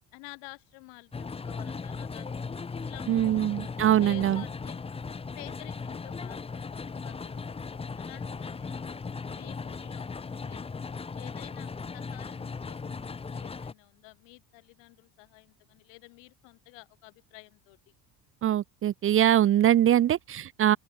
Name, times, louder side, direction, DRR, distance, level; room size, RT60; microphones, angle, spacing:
voice 1, 0.1-4.8 5.3-10.1 10.4-10.7 11.1-17.8, left 34 dB, 85° left, 6.6 m, -51 dB
sound 1, 1.1-13.7, left 4 dB, 15° left, 1.2 m, -37 dB
voice 2, 3.1-4.4 18.4-20.8, right 11 dB, 30° right, 0.7 m, -23 dB
open air
cardioid pair, 150°, 42 cm